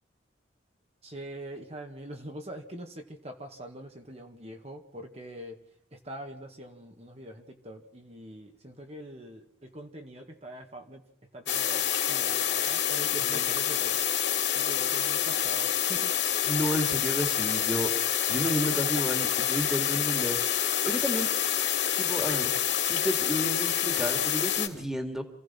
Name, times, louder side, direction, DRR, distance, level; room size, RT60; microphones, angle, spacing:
voice 1, 1.0-5.6 5.9-11.0 11.3-16.1, right 1 dB, 35° right, 3 dB, 2.1 m, -43 dB
sound 1, 11.5-24.7, left 10 dB, 75° left, 2.9 m, -27 dB
voice 2, 16.4-17.9 18.3-20.4 20.8-21.3 22.0-22.5 22.8-25.2, equal, 5° right, 5 dB, 2.5 m, -31 dB
28.0 x 17.0 x 5.9 m, 0.67 s
head